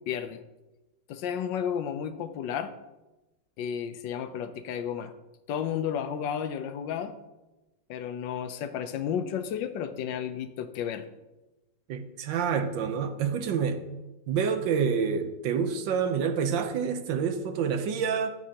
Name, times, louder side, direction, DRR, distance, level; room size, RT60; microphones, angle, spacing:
voice 1, 0.1-0.4 1.1-2.7 3.6-5.1 5.5-7.2 7.9-11.1, left 8 dB, 80° left, 10 dB, 1.4 m, -32 dB
voice 2, 11.9-13.8 14.3-18.3, right 6 dB, 90° right, 9 dB, 1.5 m, -28 dB
14.0 x 7.9 x 2.9 m, 1.1 s
omnidirectional pair, 1.9 m